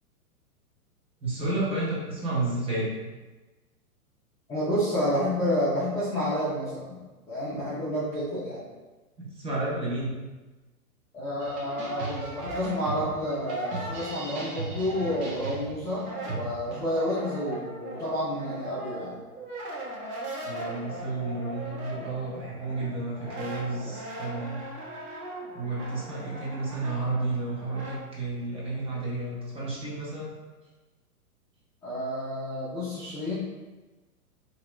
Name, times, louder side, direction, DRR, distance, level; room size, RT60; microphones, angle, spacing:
voice 1, 1.2-2.9 9.2-10.1 20.4-24.6 25.5-30.3, right 2 dB, 15° right, -6 dB, 0.8 m, -31 dB
voice 2, 4.5-7.0 7.3-8.6 11.1-19.2 31.8-33.3, equal, 10° left, -11 dB, 0.5 m, -30 dB
Brass instrument, 11.2-15.6 15.9-28.0, right 1 dB, 70° right, 1.2 m, -39 dB
sound 1, 11.4-16.8, right 3 dB, 50° right, 1.1 m, -37 dB
2.8 x 2.8 x 3.1 m, 1.2 s
hypercardioid pair, 120°, 45 cm